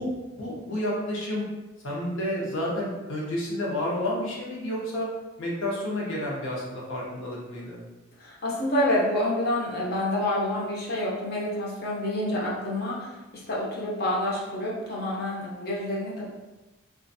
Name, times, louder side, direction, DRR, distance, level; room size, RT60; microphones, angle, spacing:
voice 1, 0.0-1.4 1.8-5.1 5.4-7.8, left 1 dB, 80° left, -5 dB, 0.8 m, -30 dB
voice 2, 8.2-16.3, left 1 dB, 50° left, -4 dB, 0.6 m, -28 dB
2.4 x 2.3 x 2.6 m, 1.1 s
head